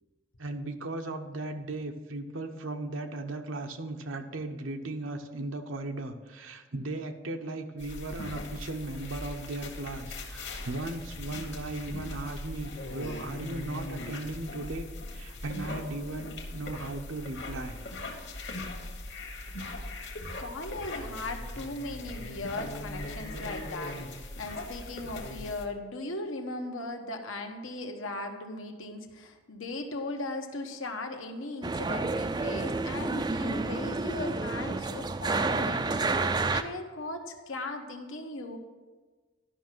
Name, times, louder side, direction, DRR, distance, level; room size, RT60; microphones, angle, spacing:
voice 1, 0.4-17.8 23.0-23.1, right 2 dB, 85° right, 5 dB, 0.9 m, -37 dB
sound 1, 7.8-25.7, left 2 dB, 60° left, 1.4 m, -40 dB
voice 2, 20.4-38.6, left 2 dB, 85° left, 4 dB, 1.2 m, -38 dB
sound 2, 31.6-36.6, right 3 dB, 20° right, 0.3 m, -30 dB
11.5 x 5.7 x 6.1 m, 1.3 s
head